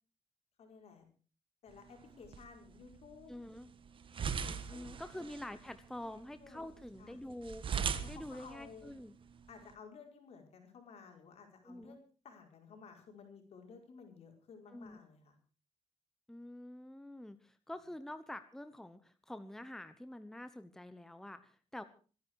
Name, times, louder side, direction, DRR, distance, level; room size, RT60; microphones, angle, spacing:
voice 1, 0.6-1.1 1.6-3.3 4.4-4.9 5.9-6.0 6.4-6.7 7.0-7.2 8.0-9.0 9.5-15.4, left 5 dB, 65° left, 3 dB, 5.2 m, -55 dB
sound 1, 1.7-9.7, right 6 dB, 50° right, 1.5 m, -43 dB
voice 2, 3.3-3.7 4.7-7.6 8.1-9.1 11.6-12.0 14.7-15.0 16.3-21.8, left 1 dB, 5° left, 11 dB, 1.0 m, -47 dB
25.0 x 10.5 x 4.7 m, 0.38 s
cardioid pair, 120°, 11 cm